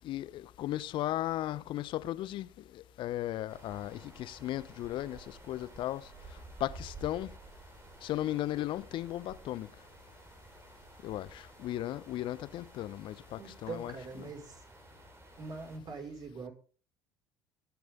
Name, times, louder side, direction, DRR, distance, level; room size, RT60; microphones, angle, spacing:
voice 1, 0.0-2.5 2.7-6.0 6.6-7.3 8.0-9.7 11.0-14.3, left 14 dB, 55° left, 0.9 m, -36 dB
sound 1, 3.5-15.8, right 3 dB, 25° right, 3.5 m, -53 dB
voice 2, 13.4-14.6 15.4-16.5, right 4 dB, 40° right, 6.0 m, -43 dB
20.0 x 10.5 x 3.8 m
figure-of-eight pair, 60°, 10 cm